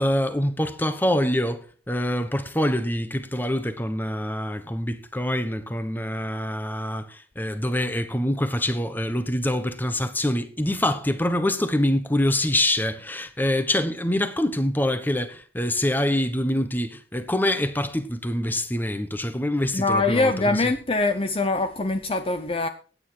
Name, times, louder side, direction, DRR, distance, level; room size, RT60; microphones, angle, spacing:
voice 1, 0.0-20.7, left 1 dB, 10° left, 1.1 m, -25 dB
voice 2, 19.7-22.7, left 3 dB, 30° left, 0.7 m, -23 dB
15.5 x 9.6 x 4.5 m
head